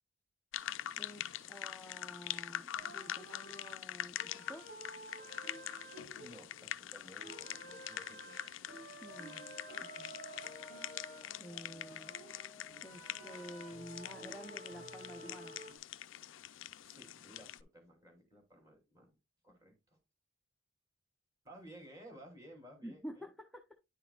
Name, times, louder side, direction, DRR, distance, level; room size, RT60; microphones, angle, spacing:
sound 1, 0.5-17.6, left 11 dB, 70° left, 0.4 m, -45 dB
voice 1, 1.0-4.6 9.0-9.4 9.8-10.1 11.4-12.2 12.8-15.5 22.8-23.6, equal, ahead, 2 dB, 0.7 m, -50 dB
sound 2, 2.8-6.8 7.2-15.8, right 2 dB, 55° right, 3.8 m, -52 dB
voice 2, 6.2-8.4 16.8-19.2 19.4-20.0 21.4-23.3, right 1 dB, 15° right, 1 dB, 2.8 m, -56 dB
Brass instrument, 9.1-15.8, left 2 dB, 20° left, 1.1 m, -57 dB
9.9 x 5.7 x 2.3 m, 0.24 s
head